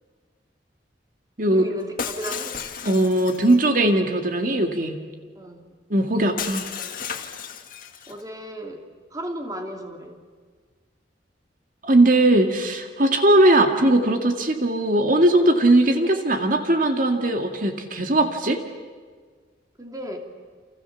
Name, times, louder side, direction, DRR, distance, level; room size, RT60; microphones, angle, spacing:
voice 1, 1.5-2.6 5.4-5.6 8.1-8.8 9.1-10.2 19.8-20.2, equal, 20° right, 3 dB, 2.9 m, -34 dB
Shatter, 2.0-3.6 6.4-8.2, left 7 dB, 50° left, 2.1 m, -33 dB
voice 2, 2.9-5.0 5.9-6.7 11.8-18.6, right 1 dB, 45° right, 5 dB, 2.2 m, -19 dB
30.0 x 27.5 x 7.3 m, 1.5 s
head